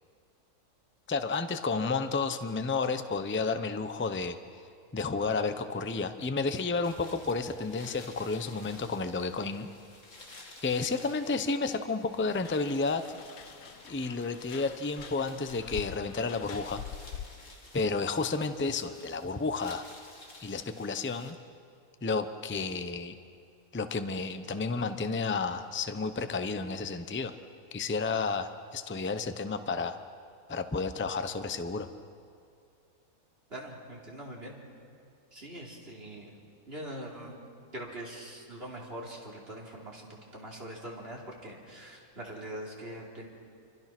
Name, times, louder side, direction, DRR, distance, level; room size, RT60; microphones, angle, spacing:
voice 1, 1.1-4.4 4.9-9.7 10.6-13.2 13.9-16.8 17.7-19.9 20.4-21.4 22.0-23.1 23.7-27.3 27.7-30.0 30.5-31.9, left 4 dB, 10° left, 9 dB, 0.6 m, -31 dB
sound 1, 6.8-21.3, left 2 dB, 55° left, 2.7 m, -53 dB
sound 2, 12.3-17.5, left 8 dB, 75° left, 1.4 m, -45 dB
voice 2, 33.5-34.6 35.3-36.4 36.7-37.4 37.7-43.3, right 1 dB, 40° right, -2 dB, 3.8 m, -43 dB
27.0 x 24.5 x 6.1 m, 2.3 s
omnidirectional pair, 1.6 m